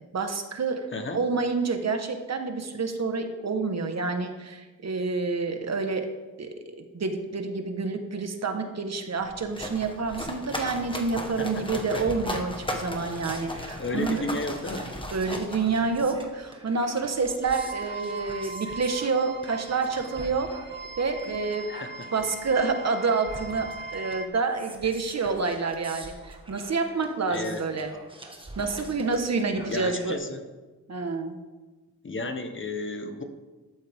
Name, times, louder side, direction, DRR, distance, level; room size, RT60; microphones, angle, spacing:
voice 1, 0.1-0.9 1.1-6.1 6.4-6.5 6.9-14.4 15.1-20.5 21.0-21.7 22.1-27.9 28.6-30.2 30.9-31.4, right 4 dB, 50° right, 5 dB, 1.4 m, -28 dB
sound 1, 9.2-16.2, left 1 dB, 15° left, 1.4 m, -36 dB
sound 2, 11.9-30.1, right 1 dB, 15° right, 1.6 m, -45 dB
voice 2, 13.8-14.9 21.7-22.1 27.3-27.9 29.7-30.4 32.0-33.2, left 2 dB, 35° left, 6 dB, 1.2 m, -33 dB
sound 3, 17.4-24.3, right 3 dB, 30° right, 1.0 m, -40 dB
14.0 x 12.0 x 3.6 m, 1.2 s
wide cardioid pair, 135°, 34 cm